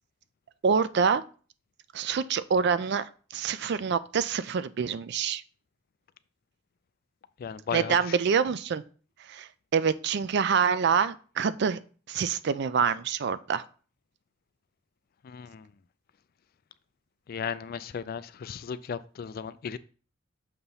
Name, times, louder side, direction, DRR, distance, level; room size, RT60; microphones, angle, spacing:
voice 1, 0.6-1.2 1.9-3.1 3.3-5.4 7.7-8.8 9.3-11.8 12.1-13.6, right 6 dB, 60° right, 0.4 m, -26 dB
voice 2, 7.4-8.2 15.2-15.7 17.3-19.8, left 7 dB, 50° left, 0.3 m, -36 dB
6.7 x 3.0 x 5.4 m
head